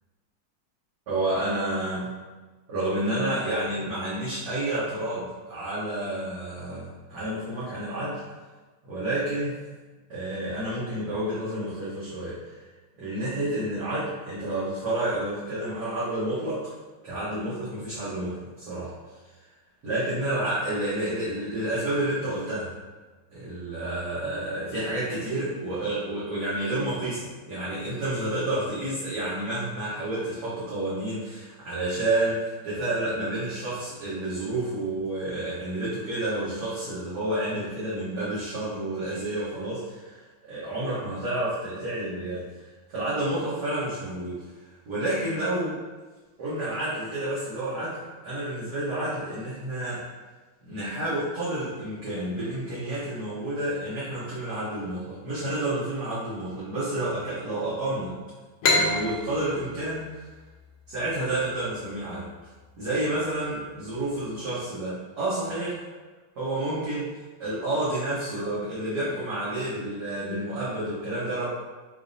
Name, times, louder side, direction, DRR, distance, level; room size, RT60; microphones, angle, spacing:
voice 1, 1.1-2.1 2.7-8.2 8.8-9.6 10.1-12.5 13.0-16.7 17.0-18.9 19.8-22.7 23.3-42.4 42.9-44.4 44.9-45.8 46.4-50.0 50.6-58.1 58.7-60.3 60.9-62.2 62.8-65.8 66.4-67.1 67.4-71.5, right 1 dB, 55° right, -11 dB, 1.3 m, -30 dB
sound 1, 58.6-62.0, left 2 dB, 75° left, 0.9 m, -28 dB
5.0 x 2.6 x 2.6 m, 1.3 s
omnidirectional pair, 2.3 m